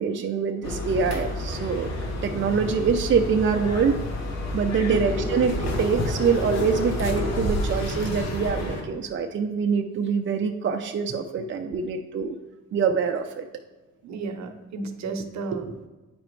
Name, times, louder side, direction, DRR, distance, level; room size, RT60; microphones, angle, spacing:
voice 1, 0.0-1.9 2.2-4.0 4.5-12.4 12.7-13.5, right 6 dB, 40° right, 3 dB, 0.5 m, -25 dB
sound 1, 0.6-8.8, left 1 dB, 60° left, 1.5 m, -29 dB
voice 2, 14.0-15.9, right 4 dB, 65° right, 6 dB, 0.9 m, -33 dB
8.5 x 5.0 x 3.2 m, 1.2 s
cardioid pair, 90°, 30 cm